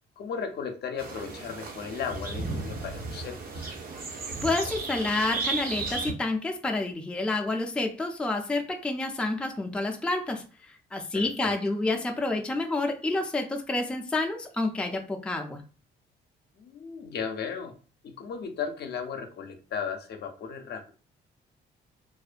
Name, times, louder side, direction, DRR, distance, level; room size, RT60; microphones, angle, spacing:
voice 1, 0.2-3.7 11.1-11.5 16.6-17.8 18.0-20.9, left 6 dB, 55° left, 5 dB, 0.5 m, -36 dB
Blackbird possibly, 1.0-6.1, right 3 dB, 50° right, 0.6 m, -34 dB
voice 2, 4.2-15.6, left 2 dB, 5° left, 3 dB, 0.3 m, -29 dB
2.4 x 2.1 x 2.4 m, 0.36 s
cardioid pair, 90°, 20 cm